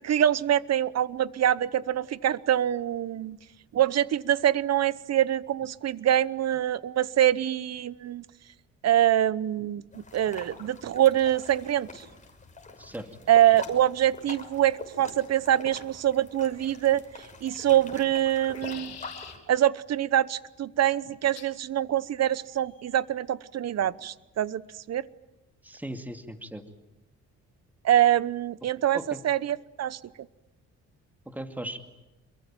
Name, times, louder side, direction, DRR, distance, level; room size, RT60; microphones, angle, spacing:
voice 1, 0.0-3.4 3.7-8.2 8.8-12.0 13.3-17.0 17.4-19.0 19.5-24.6 24.9-25.1 27.8-29.0 29.2-30.0, right 11 dB, 60° right, 18 dB, 1.0 m, -24 dB
sound 1, 9.9-19.4, left 3 dB, 25° left, 6.3 m, -45 dB
voice 2, 12.8-13.1 25.6-26.6 28.9-29.2 31.3-31.8, right 1 dB, 5° right, 6 dB, 2.4 m, -37 dB
sound 2, 17.3-17.8 18.3-19.4 21.3-21.6 22.5-22.9, left 8 dB, 55° left, 4.5 m, -46 dB
26.5 x 23.0 x 9.0 m, 0.97 s
cardioid pair, 90°, 30 cm